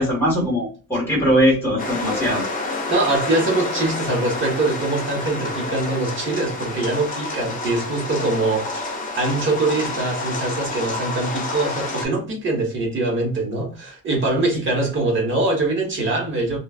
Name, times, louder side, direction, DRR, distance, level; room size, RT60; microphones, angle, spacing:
voice 1, 0.0-2.5, equal, 5° left, 1.3 m, -20 dB
sound 1, 1.8-12.1, left 2 dB, 25° left, 0.5 m, -29 dB
voice 2, 2.9-8.9 9.1-16.6, right 2 dB, 35° right, 1.0 m, -23 dB
3.1 x 2.2 x 2.3 m
cardioid pair, 175°, 35 cm